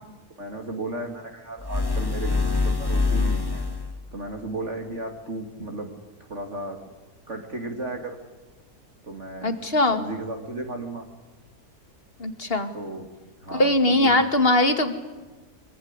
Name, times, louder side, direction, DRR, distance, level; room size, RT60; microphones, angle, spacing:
voice 1, 0.4-3.7 4.1-5.9 6.2-6.8 7.3-8.2 9.0-9.5 9.9-11.0 12.7-13.1 13.4-14.3, right 2 dB, 50° right, 3 dB, 2.9 m, -34 dB
sound 1, 1.6-4.0, left 3 dB, 15° left, 1.9 m, -24 dB
voice 2, 9.4-10.0 12.2-12.7 13.5-15.0, left 1 dB, 40° left, 8 dB, 2.4 m, -21 dB
25.0 x 23.5 x 9.8 m, 1.2 s
omnidirectional pair, 1.6 m